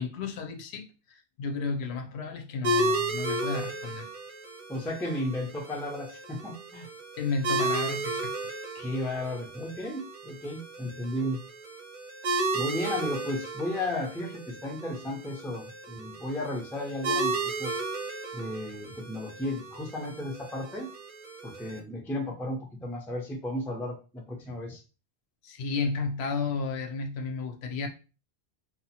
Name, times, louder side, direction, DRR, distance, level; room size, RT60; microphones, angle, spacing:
voice 1, 0.0-4.1 7.2-8.3 25.4-27.9, left 4 dB, 75° left, 0.8 m, -32 dB
sound 1, 2.6-21.8, right 2 dB, 55° right, 0.6 m, -34 dB
voice 2, 4.7-6.9 8.7-11.4 12.5-17.8 18.3-20.9 21.4-24.8, left 1 dB, 5° left, 0.4 m, -34 dB
2.7 x 2.1 x 2.7 m
omnidirectional pair, 1.1 m